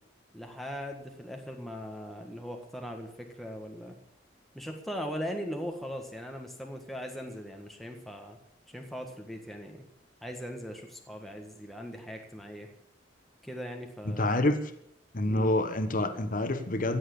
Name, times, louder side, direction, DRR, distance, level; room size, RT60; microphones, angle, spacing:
voice 1, 0.3-4.0 4.5-8.4 8.7-9.8 10.2-12.7 13.4-14.5 15.3-15.5, equal, ahead, 2 dB, 1.6 m, -39 dB
voice 2, 14.1-14.7 15.1-17.0, left 1 dB, 45° left, 9 dB, 1.3 m, -27 dB
15.5 x 7.7 x 8.6 m, 0.72 s
head